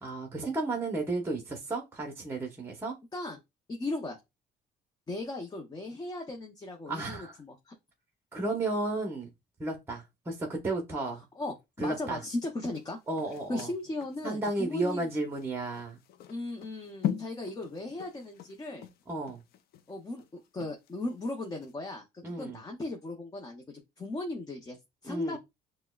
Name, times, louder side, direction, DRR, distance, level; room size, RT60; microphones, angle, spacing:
voice 1, 0.0-3.0 6.9-7.4 8.3-9.3 9.6-11.2 11.8-12.2 13.1-13.7 14.2-16.0 19.1-19.4 22.2-22.6 25.0-25.4, right 2 dB, 15° right, 0.8 m, -33 dB
voice 2, 3.7-4.2 5.1-7.7 11.4-13.0 13.5-15.1 16.3-18.9 19.9-23.6 24.0-25.4, left 2 dB, 20° left, 0.7 m, -37 dB
sound 1, 12.7-21.2 21.6-21.7, left 11 dB, 65° left, 0.5 m, -40 dB
5.8 x 2.1 x 2.3 m
cardioid pair, 110°, 17 cm